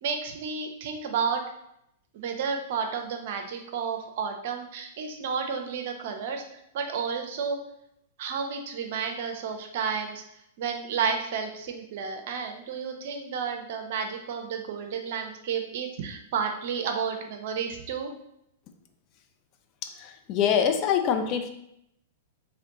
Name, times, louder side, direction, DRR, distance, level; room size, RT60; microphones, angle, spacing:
voice 1, 0.0-1.4 2.1-6.4 6.7-7.6 8.2-10.2 10.6-18.1, right 6 dB, 60° right, 4 dB, 0.7 m, -31 dB
voice 2, 19.8-21.5, left 8 dB, 40° left, 6 dB, 0.5 m, -25 dB
3.3 x 3.0 x 3.7 m, 0.77 s
hypercardioid pair, 110°, 0 cm